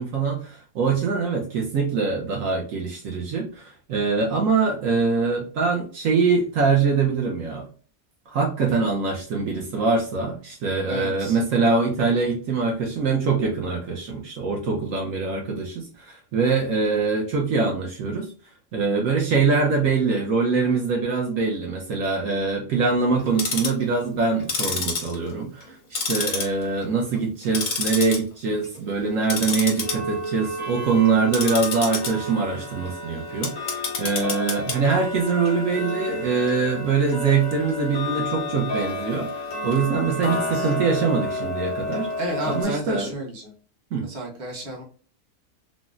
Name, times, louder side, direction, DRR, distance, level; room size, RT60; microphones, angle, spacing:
voice 1, 0.0-7.7 8.3-18.3 18.7-42.1 42.5-43.1 43.9-44.1, right 4 dB, 70° right, 0 dB, 1.0 m, -23 dB
voice 2, 10.9-11.4 40.2-40.7 42.2-43.5 44.0-44.8, right 1 dB, 35° right, -1 dB, 0.9 m, -32 dB
Tick-tock, 23.2-23.8 24.4-25.7 26.0-26.8 27.2-28.2 28.5-28.8 29.2-42.6, left 2 dB, 45° left, 0.7 m, -29 dB
3.9 x 2.0 x 2.4 m, 0.41 s
omnidirectional pair, 1.5 m